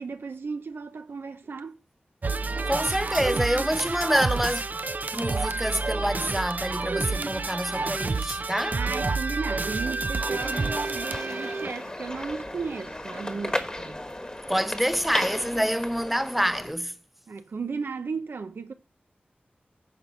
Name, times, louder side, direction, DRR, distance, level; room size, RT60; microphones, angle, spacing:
voice 1, 0.0-1.8 8.7-14.0 17.3-18.7, right 4 dB, 85° right, 0.7 m, -35 dB
sound 1, 2.2-11.7, right 3 dB, 50° right, 0.5 m, -29 dB
voice 2, 2.7-4.6 5.1-8.8 14.5-17.0, equal, 5° right, 0.5 m, -27 dB
sound 2, 10.2-16.7, left 1 dB, 20° left, 1.2 m, -35 dB
10.5 x 4.4 x 5.5 m
wide cardioid pair, 80°, 4 cm